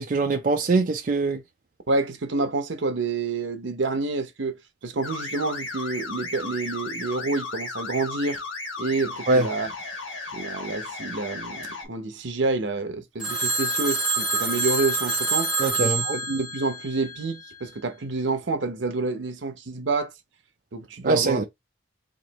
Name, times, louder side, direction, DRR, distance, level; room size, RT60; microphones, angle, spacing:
voice 1, 0.0-1.4 9.3-9.5 15.6-16.2 21.0-21.4, right 3 dB, 40° right, 0.4 m, -22 dB
voice 2, 1.9-4.6 4.8-8.4 8.8-9.7 10.3-15.5 15.8-20.1 20.7-21.5, right 3 dB, 70° right, 0.8 m, -28 dB
sound 1, 5.0-11.9, left 3 dB, 85° left, 1.2 m, -35 dB
Telephone, 13.2-17.4, right 3 dB, 5° right, 1.0 m, -26 dB
3.1 x 2.6 x 4.0 m
head